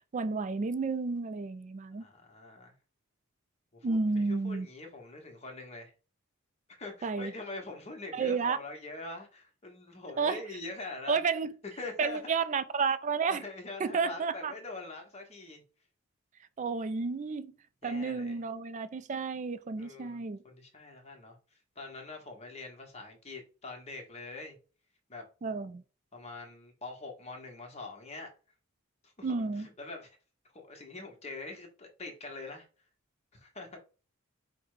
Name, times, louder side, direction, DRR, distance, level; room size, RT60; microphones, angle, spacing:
voice 1, 0.1-2.0 3.8-4.7 7.0-7.3 8.1-8.6 10.2-10.4 11.1-11.5 12.0-13.4 13.8-14.5 16.6-17.5 17.8-20.4 25.4-25.8 29.2-29.7, right 4 dB, 35° right, 0.3 m, -31 dB
voice 2, 2.0-2.7 3.7-5.9 6.8-11.2 11.8-12.3 13.3-15.6 17.8-18.4 19.8-21.4 21.8-24.6 25.1-25.2 26.1-28.3 29.0-30.1 30.5-32.7 33.3-33.8, left 3 dB, 30° left, 1.0 m, -44 dB
4.9 x 2.2 x 4.8 m
head